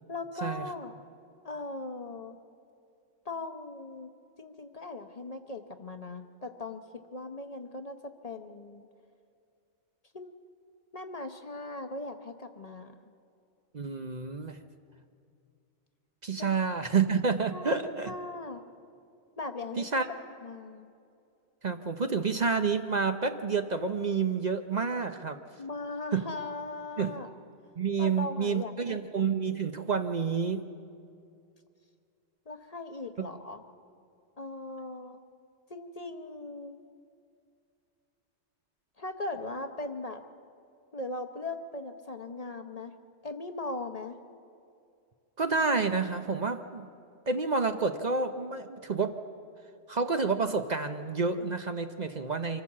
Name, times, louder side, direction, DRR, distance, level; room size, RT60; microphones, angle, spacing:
voice 1, 0.1-0.9 1.4-2.4 3.2-4.1 4.4-8.9 10.1-10.3 10.9-12.9 16.4-16.5 17.5-17.8 18.0-18.6 19.4-20.0 20.4-20.9 25.6-27.3 28.0-29.0 32.5-33.6 34.4-35.2 35.7-36.7 39.0-40.2 40.9-43.0 43.2-44.2, left 2 dB, 40° left, 7 dB, 0.8 m, -39 dB
voice 2, 13.7-14.6 16.2-18.1 19.8-20.1 21.6-25.4 26.1-26.3 27.0-27.2 27.8-30.6 33.2-33.3 45.4-46.9 47.3-49.2 49.9-52.6, right 5 dB, 45° right, 7 dB, 0.8 m, -29 dB
25.0 x 14.5 x 7.4 m, 2.4 s
omnidirectional pair, 1.2 m